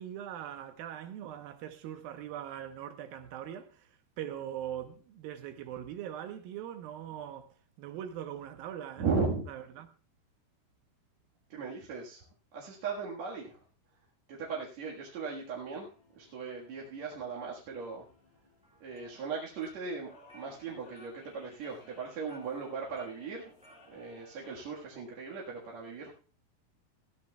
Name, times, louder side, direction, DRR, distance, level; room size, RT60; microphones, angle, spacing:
voice 1, 0.0-9.1 9.5-9.9, right 10 dB, 75° right, 2.6 m, -41 dB
voice 2, 9.0-9.5 11.5-12.2 12.5-13.6 14.3-18.1 18.8-23.5 23.9-26.1, right 5 dB, 55° right, 2.5 m, -37 dB
sound 1, 15.6-24.7, left 1 dB, 85° left, 7.3 m, -62 dB
sound 2, 18.6-24.0, right 1 dB, 5° right, 0.8 m, -59 dB
19.0 x 13.5 x 2.3 m
omnidirectional pair, 4.5 m